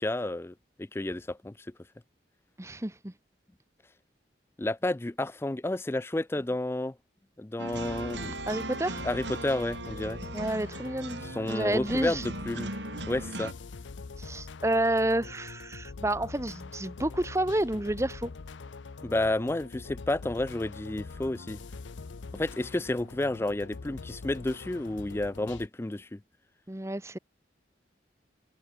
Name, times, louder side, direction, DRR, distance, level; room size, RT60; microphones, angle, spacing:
voice 1, 0.0-1.5 4.6-6.9 7.4-8.4 9.0-10.2 11.2-12.7 13.1-13.5 19.0-21.6 22.3-26.2, left 1 dB, 15° left, 0.4 m, -31 dB
voice 2, 2.6-3.1 8.5-9.0 10.3-11.2 11.5-12.2 14.2-18.3 26.7-27.2, right 1 dB, 15° right, 1.0 m, -30 dB
sound 1, 7.6-25.7, left 4 dB, 85° left, 0.6 m, -43 dB
sound 2, 7.6-13.5, right 2 dB, 75° right, 3.4 m, -39 dB
head